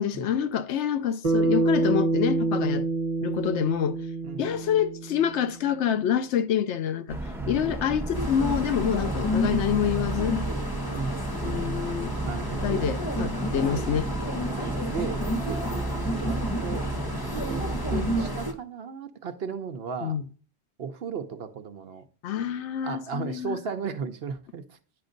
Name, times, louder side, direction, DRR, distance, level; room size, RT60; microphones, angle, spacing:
voice 1, 0.0-2.9 3.2-4.0 4.4-7.2 7.5-10.4 11.3-12.1 12.6-14.1 20.0-20.2 22.2-23.6, left 9 dB, 80° left, 0.9 m, -27 dB
Bass guitar, 1.2-5.7, right 2 dB, 35° right, 1.0 m, -27 dB
voice 2, 4.2-4.6 7.4-7.7 9.1-9.3 10.9-11.2 12.2-12.9 13.7-14.2 14.6-15.2 15.5-16.8 17.5-20.2 20.8-22.0 22.8-24.8, right 6 dB, 65° right, 0.9 m, -36 dB
sound 1, 7.1-18.2, right 2 dB, ahead, 1.0 m, -34 dB
sound 2, 8.1-18.5, equal, 25° left, 0.7 m, -30 dB
9.7 x 5.2 x 3.8 m
omnidirectional pair, 1.2 m